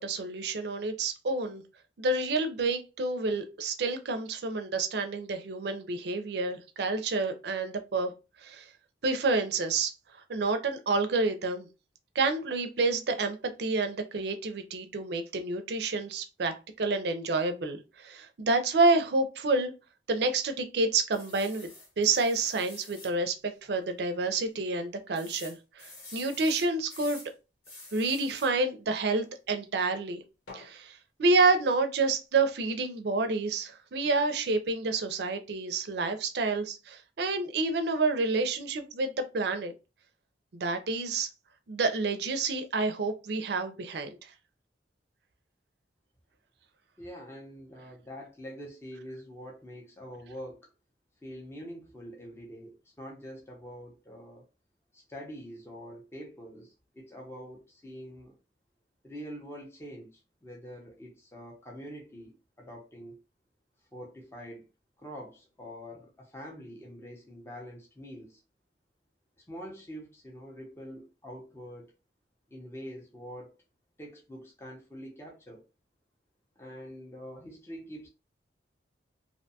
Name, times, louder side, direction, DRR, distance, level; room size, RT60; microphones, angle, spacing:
voice 1, 0.0-1.6 2.0-8.1 8.4-8.6 9.0-9.9 10.3-11.7 12.2-19.7 20.1-21.7 22.0-27.2 27.9-30.2 30.5-39.7 40.5-41.3 41.7-44.2, right 3 dB, 60° right, 0.4 m, -29 dB
sound 1, 21.1-23.1 23.7-23.8 24.0-24.1 25.1-27.3 27.6-28.5 30.5-30.7, left 2 dB, 70° left, 1.0 m, -48 dB
voice 2, 47.0-50.7 51.2-54.5 54.9-58.4 59.0-63.2 63.9-64.7 65.0-68.4 69.4-71.9 72.5-73.6 74.0-75.6 76.6-78.1, equal, 15° left, 0.5 m, -45 dB
2.5 x 2.2 x 2.7 m
head